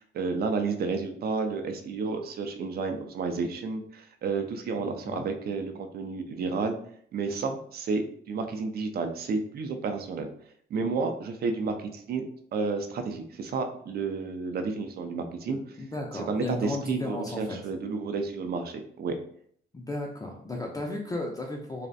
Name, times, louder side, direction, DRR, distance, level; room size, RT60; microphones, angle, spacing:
voice 1, 0.0-6.8 7.1-10.3 10.7-12.2 12.5-15.6 16.1-19.1, right 4 dB, 50° right, 6 dB, 0.4 m, -31 dB
voice 2, 4.8-5.2 15.5-17.6 19.7-21.9, left 2 dB, 20° left, -1 dB, 0.4 m, -35 dB
2.4 x 2.1 x 2.5 m, 0.62 s
cardioid pair, 90°, 20 cm